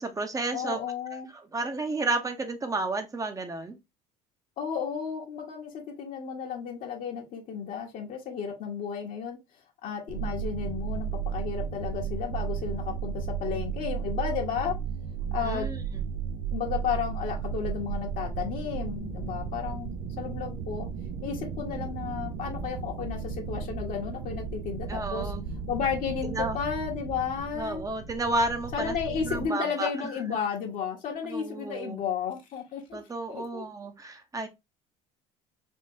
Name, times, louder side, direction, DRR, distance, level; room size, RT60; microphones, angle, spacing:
voice 1, 0.0-0.8 1.1-3.8 15.4-16.0 24.9-25.5 26.3-26.6 27.5-28.9 29.2-30.4 31.2-32.1 32.9-34.5, right 2 dB, 20° right, 0.8 m, -32 dB
voice 2, 0.5-1.3 4.6-9.4 9.8-11.1 11.3-14.8 15.3-15.7 16.5-20.9 21.2-25.3 25.7-27.8 28.7-33.0 33.3-33.7, left 7 dB, 55° left, 1.0 m, -33 dB
sound 1, 10.1-29.5, right 6 dB, 75° right, 0.6 m, -34 dB
3.6 x 2.8 x 2.6 m
supercardioid pair, 80°, 16 cm